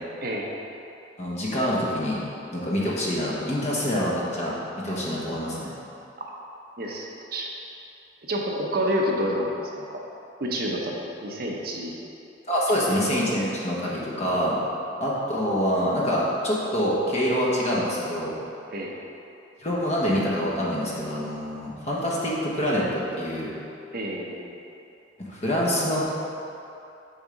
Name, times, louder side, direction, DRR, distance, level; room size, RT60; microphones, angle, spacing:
voice 1, 1.2-2.2 2.5-5.7 12.5-14.6 15.0-18.3 19.6-23.5 25.2-26.0, equal, 35° left, -5 dB, 1.1 m, -26 dB
voice 2, 6.8-7.5 8.3-10.0 10.4-12.0 18.7-18.9 23.9-24.6, equal, 50° right, -1 dB, 0.6 m, -29 dB
6.7 x 3.6 x 5.0 m, 2.8 s
head